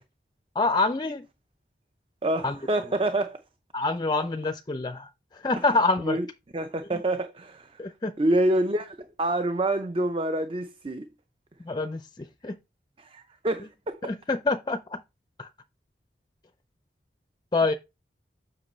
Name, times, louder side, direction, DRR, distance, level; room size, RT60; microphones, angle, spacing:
voice 1, 0.6-1.3 2.4-2.6 3.7-6.2 6.9-7.0 7.8-8.1 11.6-12.6 14.0-15.0 15.4-15.5 17.5-17.7, left 3 dB, 25° left, 0.4 m, -26 dB
voice 2, 2.2-3.4 6.0-6.3 6.5-7.7 8.2-11.1 13.0-14.0, right 1 dB, 30° right, 0.6 m, -27 dB
7.6 x 6.0 x 3.1 m
head